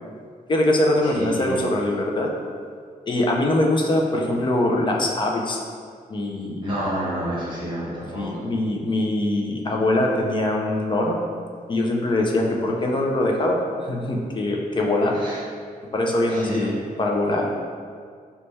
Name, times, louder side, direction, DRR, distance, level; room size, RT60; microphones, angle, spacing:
voice 1, 0.5-2.3 3.1-5.6 6.1-6.6 8.1-11.2 11.7-15.2 15.9-16.7 17.0-17.5, left 1 dB, 30° left, 0 dB, 0.4 m, -22 dB
voice 2, 1.1-1.6 6.6-8.2 15.1-15.4 16.3-16.7, equal, 30° right, -7 dB, 1.2 m, -29 dB
3.1 x 2.2 x 4.0 m, 2.1 s
wide cardioid pair, 160°, 16 cm